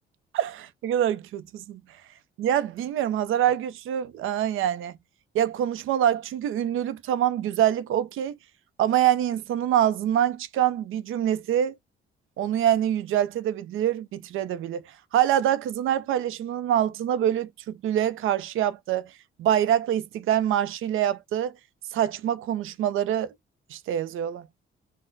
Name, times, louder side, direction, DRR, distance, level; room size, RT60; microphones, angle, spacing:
voice 1, 0.3-1.8 2.4-4.9 5.3-8.3 8.8-11.7 12.4-14.8 15.1-19.1 19.4-21.5 21.9-23.3 23.7-24.5, right 10 dB, 75° right, 0.5 m, -25 dB
4.0 x 2.0 x 3.8 m
cardioid pair, 170°, 21 cm